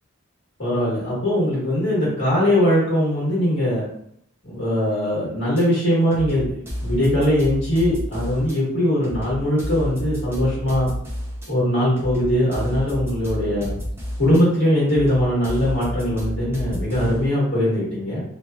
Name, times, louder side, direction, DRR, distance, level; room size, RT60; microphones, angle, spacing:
voice 1, 0.6-3.8 4.4-10.9 11.5-13.8 14.2-18.2, equal, 55° left, -7 dB, 1.5 m, -21 dB
sound 1, 5.6-5.7 6.1-8.6 9.0-11.5 12.0-14.4 14.9-17.3, equal, 10° right, 0.5 m, -30 dB
2.9 x 2.4 x 2.3 m, 0.70 s
head